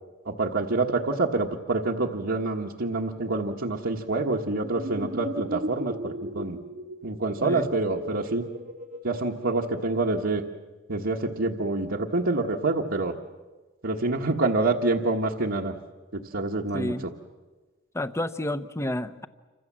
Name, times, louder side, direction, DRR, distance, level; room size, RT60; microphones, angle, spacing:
voice 1, 0.3-6.6 7.0-8.5 9.0-10.4 10.9-13.2 13.8-15.8 16.1-17.1, right 3 dB, 70° right, -1 dB, 1.4 m, -27 dB
sound 1, 4.6-10.0, right 1 dB, 45° right, 1.0 m, -37 dB
voice 2, 16.7-17.1 17.9-19.3, left 1 dB, 15° left, 12 dB, 0.8 m, -30 dB
28.0 x 25.5 x 7.5 m, 1.3 s
head